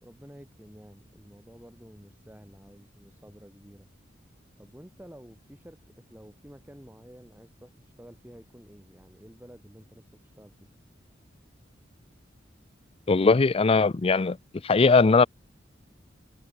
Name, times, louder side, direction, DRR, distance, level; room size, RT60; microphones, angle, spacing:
voice 1, 0.0-3.9 4.6-10.7, equal, 10° right, 4.5 m, -51 dB
voice 2, 13.1-14.4 14.6-15.3, left 4 dB, 30° left, 0.5 m, -20 dB
head